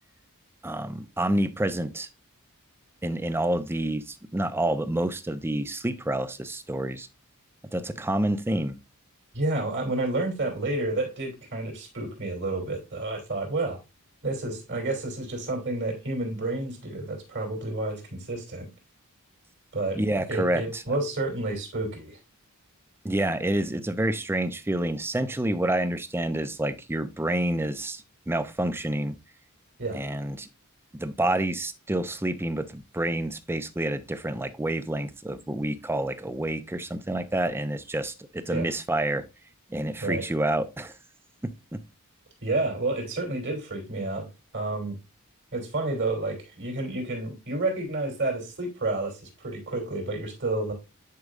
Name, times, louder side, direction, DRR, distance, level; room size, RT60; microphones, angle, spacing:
voice 1, 0.6-2.1 3.0-7.1 7.7-8.7 19.9-20.8 23.0-29.1 29.9-30.5 30.9-39.2 39.7-40.9 41.7-41.8, right 1 dB, 10° right, 0.5 m, -28 dB
voice 2, 9.3-13.8 14.2-18.7 19.7-20.0 20.3-22.2 29.8-30.0 38.5-38.7 40.0-40.2 42.4-44.3 44.5-45.0 45.5-50.7, right 2 dB, 55° right, 3.0 m, -30 dB
9.6 x 5.0 x 2.4 m
head